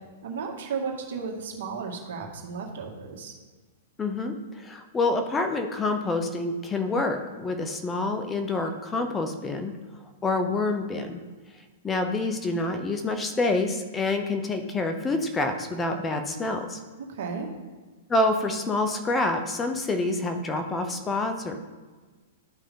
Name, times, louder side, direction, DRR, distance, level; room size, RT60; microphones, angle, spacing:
voice 1, 0.2-3.3 17.1-17.5, right 5 dB, 65° right, 1 dB, 1.9 m, -34 dB
voice 2, 4.0-9.7 10.2-11.2 11.8-16.8 18.1-21.6, left 2 dB, 15° left, 6 dB, 0.8 m, -27 dB
12.5 x 4.9 x 3.8 m, 1.3 s
hypercardioid pair, 130°, 0 cm